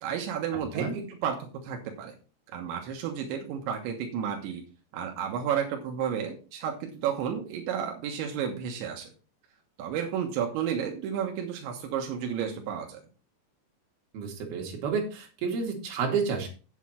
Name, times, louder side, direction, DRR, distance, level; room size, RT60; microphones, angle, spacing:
voice 1, 0.0-2.2 2.5-4.6 4.9-9.1 9.8-13.0, right 8 dB, 85° right, 2 dB, 3.5 m, -32 dB
voice 2, 14.1-16.5, right 5 dB, 60° right, 0 dB, 4.2 m, -30 dB
8.4 x 8.3 x 4.5 m, 0.35 s
omnidirectional pair, 5.2 m